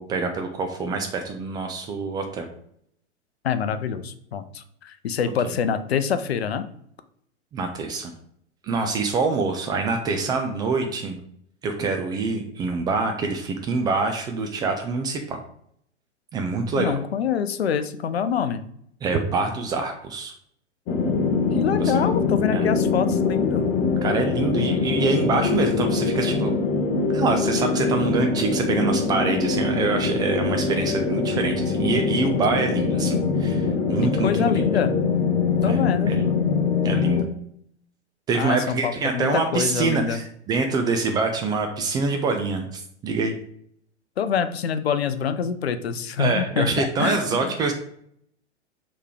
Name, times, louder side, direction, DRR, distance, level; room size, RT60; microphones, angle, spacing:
voice 1, 0.0-2.5 7.5-8.1 8.6-11.2 11.6-15.4 16.3-17.0 19.0-20.3 21.8-22.1 22.5-22.7 24.0-26.5 27.1-34.6 35.7-36.3 36.8-37.3 38.3-43.4 46.2-47.7, right 4 dB, 10° right, 4 dB, 0.4 m, -25 dB
voice 2, 3.4-6.6 16.7-18.6 21.5-23.7 34.2-34.9 35.6-36.4 38.3-40.2 44.2-47.5, left 7 dB, 60° left, 11 dB, 0.7 m, -26 dB
sound 1, 20.9-37.2, left 4 dB, 30° left, 1.0 m, -23 dB
6.5 x 3.3 x 4.9 m, 0.67 s
figure-of-eight pair, 100°, 35 cm